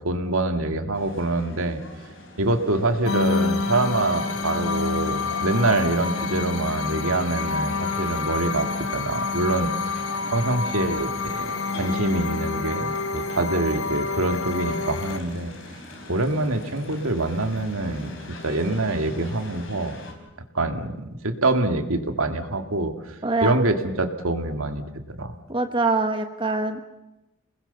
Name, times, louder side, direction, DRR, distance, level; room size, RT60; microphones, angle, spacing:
voice 1, 0.0-1.8 2.4-8.7 8.9-9.7 10.3-15.5 16.1-18.1 18.4-20.0 20.5-22.9 23.4-25.3, right 2 dB, 80° right, 6 dB, 2.3 m, -25 dB
sound 1, 0.9-20.1, left 1 dB, 65° left, 5.2 m, -43 dB
sound 2, 3.1-15.2, left 4 dB, 85° left, 1.5 m, -28 dB
voice 2, 23.2-23.5 25.5-26.8, right 3 dB, 25° right, 6 dB, 1.3 m, -23 dB
29.0 x 20.5 x 7.1 m, 0.96 s
head